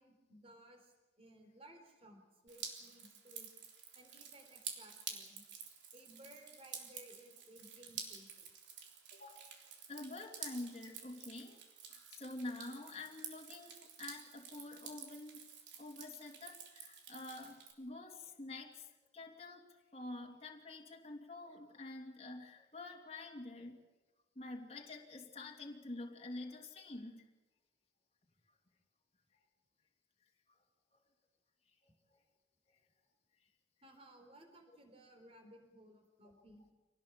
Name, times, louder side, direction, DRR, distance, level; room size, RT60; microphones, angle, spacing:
voice 1, 0.0-3.5 3.9-5.5 5.9-8.5 31.9-32.0 33.8-36.6, right 1 dB, 30° right, 5 dB, 4.0 m, -59 dB
Drip, 2.5-17.7, right 7 dB, 70° right, 3.6 m, -50 dB
voice 2, 9.1-9.5 9.9-11.6 11.9-15.4 15.8-23.8 24.3-27.3 30.9-31.0, left 2 dB, 30° left, 0 dB, 2.7 m, -48 dB
25.5 x 19.0 x 7.5 m, 1.1 s
head